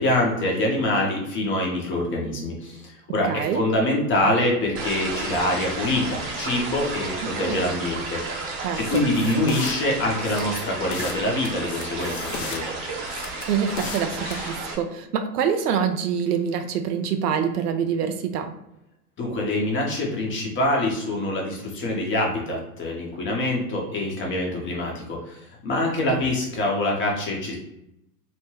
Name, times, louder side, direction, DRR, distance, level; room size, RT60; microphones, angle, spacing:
voice 1, 0.0-8.4 8.7-12.7 19.2-27.6, left 1 dB, 25° left, -1 dB, 0.8 m, -25 dB
voice 2, 3.3-3.6 7.2-7.7 8.6-9.0 13.5-18.5 26.1-26.2, right 7 dB, 80° right, 6 dB, 0.6 m, -26 dB
sound 1, 4.7-14.7, right 3 dB, 30° right, 0.8 m, -32 dB
sound 2, 8.8-9.7 10.2-11.2 11.4-12.6 13.1-14.5, left 4 dB, 55° left, 0.7 m, -35 dB
2.8 x 2.1 x 3.1 m, 0.81 s
hypercardioid pair, 110°, 47 cm